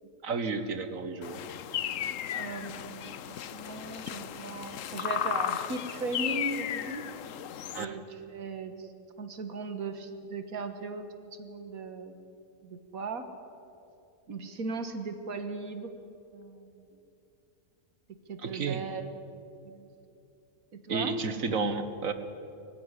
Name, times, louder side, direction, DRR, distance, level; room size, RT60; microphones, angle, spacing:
voice 1, 0.2-1.4 7.7-8.0 18.4-18.8 20.9-22.1, right 4 dB, 70° right, 10 dB, 1.8 m, -31 dB
sound 1, 1.2-7.9, left 10 dB, 70° left, 1.1 m, -35 dB
voice 2, 2.4-7.1 7.8-8.9 9.2-12.2 12.6-13.3 14.3-15.9 16.3-17.0 18.3-19.1 19.6-19.9 20.8-21.1, right 3 dB, 90° right, 8 dB, 1.9 m, -38 dB
24.0 x 15.5 x 9.9 m, 2.7 s
omnidirectional pair, 1.5 m